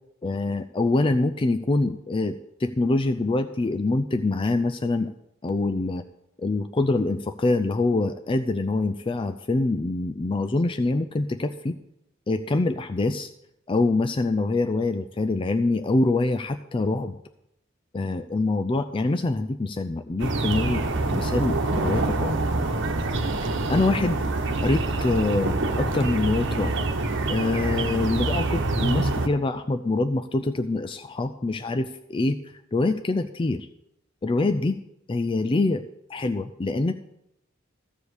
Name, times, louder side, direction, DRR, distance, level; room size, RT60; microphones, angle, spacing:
voice 1, 0.2-5.1 5.4-6.0 6.4-11.8 12.3-13.3 13.7-17.2 17.9-22.3 23.7-24.2 24.6-26.8 27.3-32.4 32.7-33.7 34.2-34.8 35.1-35.8 36.1-36.9, left 2 dB, 25° left, 8 dB, 0.4 m, -25 dB
sound 1, 20.2-29.3, right 2 dB, 60° right, 1.1 m, -26 dB
14.5 x 5.0 x 8.2 m, 0.84 s
head